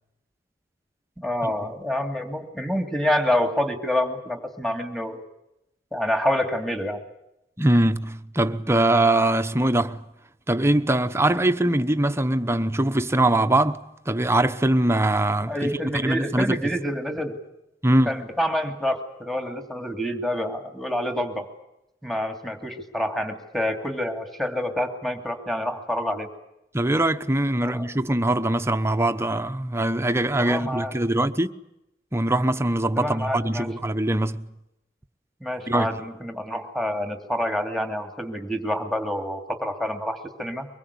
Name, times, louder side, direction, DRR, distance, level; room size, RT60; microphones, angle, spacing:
voice 1, 1.2-5.2 5.9-7.0 15.5-17.4 18.1-21.5 22.0-26.3 27.6-27.9 30.4-30.9 33.0-33.7 35.4-40.7, left 1 dB, ahead, 2.6 m, -27 dB
voice 2, 7.6-10.0 10.5-16.6 17.8-18.2 26.7-31.5 32.1-34.5 35.7-36.0, right 1 dB, 15° right, 1.0 m, -22 dB
24.5 x 22.0 x 8.4 m
head